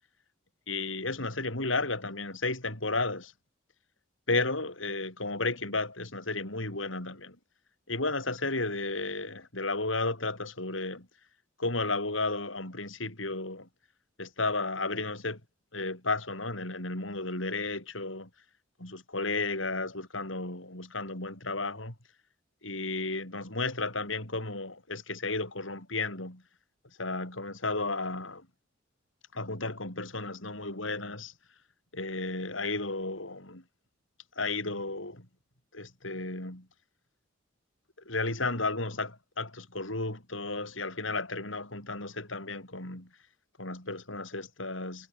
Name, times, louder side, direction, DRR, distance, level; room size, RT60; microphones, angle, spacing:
voice 1, 0.7-3.3 4.3-7.4 7.9-11.1 11.6-13.7 14.2-15.4 15.7-18.3 18.8-21.9 22.6-26.4 27.0-28.5 29.3-31.3 31.9-33.6 34.4-35.3 35.7-36.7 38.1-43.1 43.6-45.1, left 3 dB, 85° left, 7.7 m, -33 dB
head